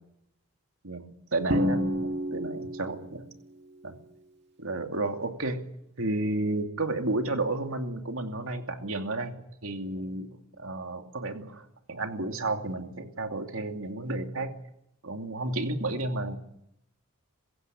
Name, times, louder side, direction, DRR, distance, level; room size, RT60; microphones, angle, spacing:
voice 1, 0.8-3.2 3.8-3.9 4.6-5.7 6.0-9.3 9.6-10.3 10.6-14.6 15.0-16.4, right 2 dB, 70° right, 5 dB, 2.7 m, -32 dB
Drum, 1.5-3.2, equal, 50° right, 2.2 m, -29 dB
22.5 x 16.0 x 10.0 m, 0.78 s
head